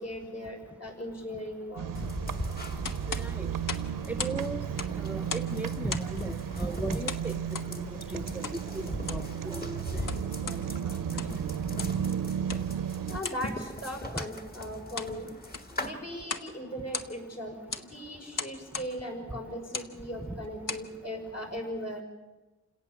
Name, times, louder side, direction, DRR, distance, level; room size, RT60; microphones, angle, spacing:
voice 1, 0.0-1.9 13.1-15.3 15.7-22.0, equal, 50° left, 1 dB, 5.8 m, -38 dB
sound 1, 1.8-13.2, right 9 dB, 90° right, 0.7 m, -34 dB
sound 2, 1.9-15.9, left 1 dB, 30° left, 1.8 m, -40 dB
sound 3, 2.8-4.4 4.7-5.6 5.9-6.2 7.1-7.7 8.4-8.6 9.0-9.3 9.9-10.6 11.0-11.4 11.8-12.0 12.5-12.7 13.2-13.4 14.1-14.3 14.7-15.2 15.4-15.8 16.2-16.5 16.8-17.3 17.7-17.9 18.3-18.9 19.6-19.9 20.4-20.9, left 5 dB, 75° left, 1.3 m, -37 dB
voice 2, 3.1-3.5 4.1-4.6 5.0-7.4 7.8-8.3 8.7-9.8 10.5-10.6, right 2 dB, 5° right, 8 dB, 0.6 m, -36 dB
28.5 x 18.0 x 7.2 m, 1.1 s
wide cardioid pair, 135°, 32 cm